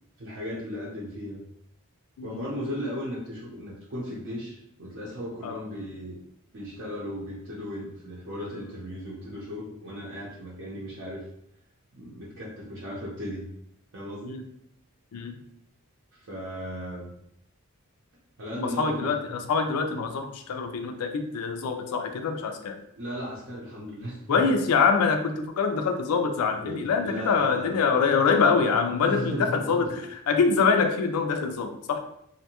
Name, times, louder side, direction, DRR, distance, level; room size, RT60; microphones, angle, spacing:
voice 1, 0.2-1.4 2.2-6.2 6.5-11.2 11.9-13.5 13.9-14.4 16.2-17.1 18.4-19.2 23.0-24.4 26.6-27.8 29.0-29.8, equal, 55° right, -5 dB, 0.7 m, -36 dB
voice 2, 2.2-2.5 5.4-5.6 14.2-14.4 15.1-15.4 18.6-22.8 24.3-32.0, left 5 dB, 80° left, 7 dB, 0.4 m, -25 dB
2.6 x 2.2 x 2.8 m, 0.74 s
head